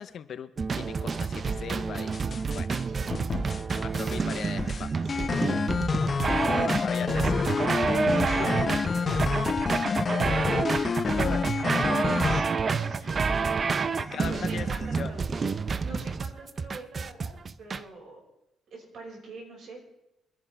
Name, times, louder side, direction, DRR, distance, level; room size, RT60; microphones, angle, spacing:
voice 1, 0.0-2.2 2.5-2.7 3.8-5.2 6.6-7.7 10.8-11.5 14.1-15.1, left 8 dB, 60° left, 13 dB, 0.7 m, -39 dB
sound 1, 0.6-17.8, right 5 dB, 40° right, 0.6 m, -29 dB
sound 2, 2.1-2.8 3.1-3.8 4.1-12.4, left 5 dB, 40° left, 0.4 m, -28 dB
sound 3, 3.9-5.0 8.9-10.0 13.9-15.1, right 1 dB, 20° right, 2.5 m, -50 dB
voice 2, 6.4-11.5 11.9-15.2 15.8-18.2 18.7-19.8, right 2 dB, 65° right, -1 dB, 5.5 m, -44 dB
24.5 x 10.5 x 3.4 m, 0.88 s
cardioid pair, 90°, 0 cm